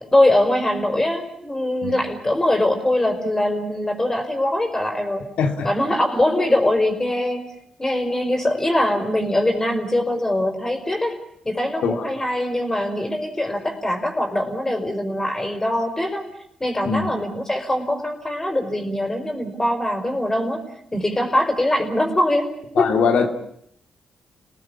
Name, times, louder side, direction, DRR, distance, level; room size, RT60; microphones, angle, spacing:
voice 1, 0.1-5.3 5.6-7.4 7.8-11.2 11.4-16.2 16.6-20.6 20.9-23.0, left 1 dB, 20° left, 5 dB, 5.3 m, -22 dB
voice 2, 5.4-5.7 11.8-11.9 16.8-17.1 22.7-23.3, left 6 dB, 70° left, 6 dB, 2.5 m, -20 dB
28.5 x 18.5 x 8.6 m, 0.72 s
hypercardioid pair, 40°, 2 cm